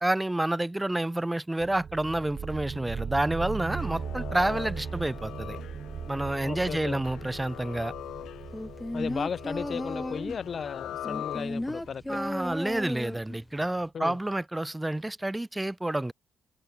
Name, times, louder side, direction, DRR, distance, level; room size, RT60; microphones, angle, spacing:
voice 1, 0.0-5.6 6.1-7.9 12.1-16.1, right 1 dB, 10° right, 1.7 m, -29 dB
sound 1, 1.6-13.0, right 7 dB, 50° right, 3.8 m, -39 dB
sound 2, 3.7-11.9, left 12 dB, 75° left, 4.2 m, -41 dB
voice 2, 6.4-7.0 8.9-12.0 13.9-14.2, left 6 dB, 45° left, 1.0 m, -35 dB
sound 3, 8.5-10.5 11.0-13.4 13.8-13.9, left 1 dB, 10° left, 2.1 m, -34 dB
open air
cardioid pair, 90°, 0 cm